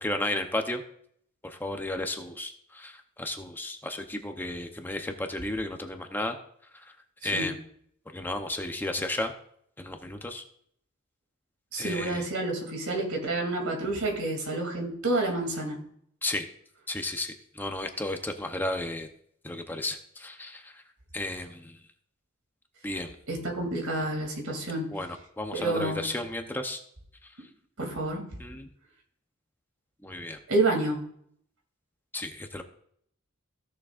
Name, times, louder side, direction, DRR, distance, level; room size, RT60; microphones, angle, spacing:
voice 1, 0.0-0.8 1.4-6.4 6.7-6.9 7.2-7.6 8.1-9.3 9.8-10.4 11.8-12.2 16.2-16.5 16.9-19.1 19.4-20.8 21.1-21.8 22.8-23.2 24.9-26.8 28.4-28.7 30.0-30.4 32.1-32.6, left 1 dB, 10° left, 5 dB, 0.7 m, -33 dB
voice 2, 11.7-15.8 23.3-24.9 25.5-26.0 27.8-28.2 30.5-31.0, right 2 dB, 85° right, 1 dB, 2.7 m, -29 dB
15.5 x 7.0 x 2.5 m, 0.66 s
head